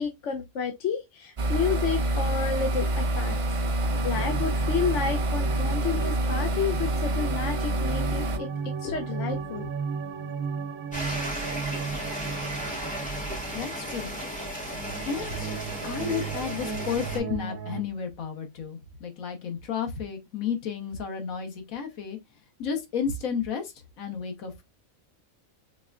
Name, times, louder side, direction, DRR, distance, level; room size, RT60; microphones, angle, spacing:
voice 1, 0.0-3.4 4.0-8.5 8.8-9.7, left 6 dB, 65° left, 0.9 m, -30 dB
sound 1, 1.4-8.4, right 1 dB, 50° right, 0.3 m, -27 dB
sound 2, 3.9-14.3 14.6-17.8, right 5 dB, 85° right, 1.0 m, -35 dB
sound 3, 10.9-17.2, right 1 dB, 5° left, 1.8 m, -34 dB
voice 2, 13.5-14.1 15.1-15.5 15.8-22.2 22.6-24.6, left 6 dB, 85° left, 1.4 m, -32 dB
4.8 x 3.3 x 2.4 m
omnidirectional pair, 1.4 m